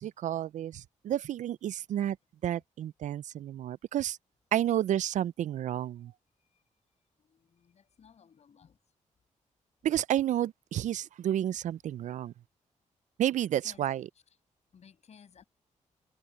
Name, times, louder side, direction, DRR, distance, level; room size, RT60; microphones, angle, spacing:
voice 1, 0.0-2.2 2.4-4.2 4.5-6.1 9.8-12.3 13.2-14.0, right 11 dB, 70° right, 0.4 m, -31 dB
voice 2, 7.2-8.8 13.5-13.9 14.7-15.4, left 7 dB, 60° left, 6.7 m, -57 dB
cardioid pair, 105°, 13 cm